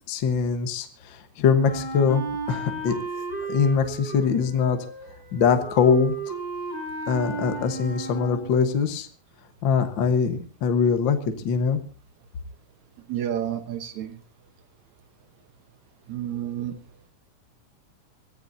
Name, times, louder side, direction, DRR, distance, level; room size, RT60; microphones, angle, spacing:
voice 1, 0.1-3.0 3.5-4.8 5.3-6.1 7.1-9.1 9.6-11.2 11.4-11.8, left 6 dB, 55° left, 7 dB, 1.4 m, -22 dB
Wind instrument woodwind instrument, 1.6-8.6, right 3 dB, 10° right, 7.9 m, -34 dB
voice 2, 13.1-14.2 16.1-16.8, right 10 dB, 70° right, 9 dB, 2.3 m, -30 dB
25.0 x 15.0 x 2.7 m, 0.37 s
omnidirectional pair, 3.7 m